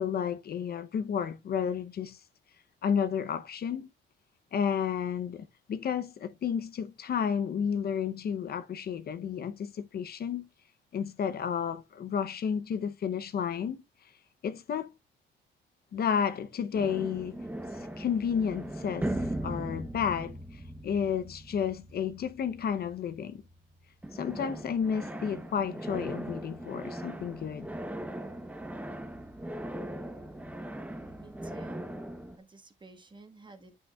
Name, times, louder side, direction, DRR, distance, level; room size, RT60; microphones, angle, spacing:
voice 1, 0.0-2.2 2.8-3.9 4.5-10.5 10.9-13.8 14.4-14.9 15.9-17.4 18.0-23.4 24.1-27.7, left 7 dB, 55° left, 0.7 m, -32 dB
sound 1, 16.7-23.7 24.0-32.4, right 1 dB, 5° right, 0.8 m, -39 dB
voice 2, 30.9-31.8 32.4-33.8, right 3 dB, 25° right, 1.4 m, -52 dB
9.1 x 7.9 x 2.3 m
cardioid pair, 130°, 20 cm